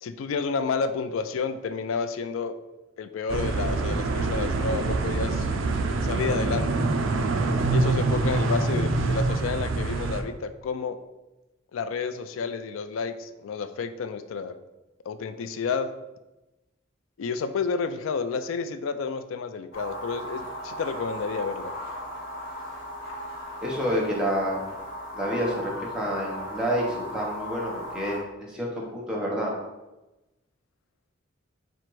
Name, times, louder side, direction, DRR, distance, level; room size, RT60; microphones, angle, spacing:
voice 1, 0.0-2.5 3.0-5.5 6.0-6.9 7.7-11.0 11.7-14.5 15.1-15.9 17.2-21.7, left 5 dB, 85° left, 11 dB, 0.3 m, -30 dB
sound 1, 3.3-10.2, right 3 dB, 75° right, 0.4 m, -25 dB
sound 2, 19.7-28.2, equal, 55° left, 1.2 m, -37 dB
voice 2, 23.6-24.6 25.1-29.6, equal, 5° right, -4 dB, 0.9 m, -28 dB
4.4 x 2.5 x 4.5 m, 1.0 s
head